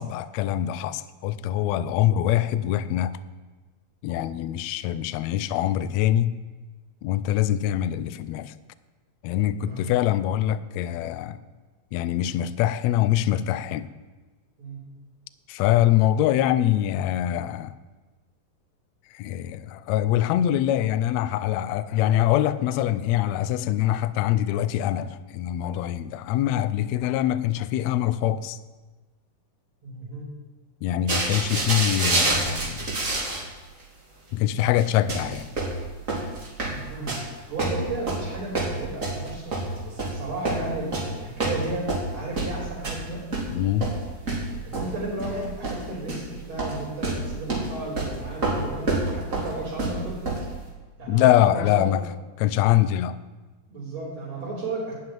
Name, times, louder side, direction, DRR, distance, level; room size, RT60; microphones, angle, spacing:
voice 1, 0.0-3.2 4.0-6.3 7.0-8.5 9.2-11.4 11.9-13.9 15.5-17.7 19.1-28.6 30.8-32.9 34.3-35.5 43.5-43.9 51.1-52.0 52.4-53.2, left 12 dB, 85° left, 14 dB, 1.5 m, -24 dB
voice 2, 29.8-30.3 36.6-43.2 44.6-50.2 51.0-51.9 53.7-54.9, right 2 dB, 55° right, -9 dB, 5.2 m, -34 dB
sound 1, 31.1-33.5 33.8-33.9 34.8-34.9 35.1-37.3 37.6-40.2 40.4-41.1 41.4-43.0 43.3-46.3 46.6-46.8 47.0-50.5, right 2 dB, 25° right, 2.6 m, -27 dB
12.0 x 7.7 x 9.0 m, 1.3 s
omnidirectional pair, 3.8 m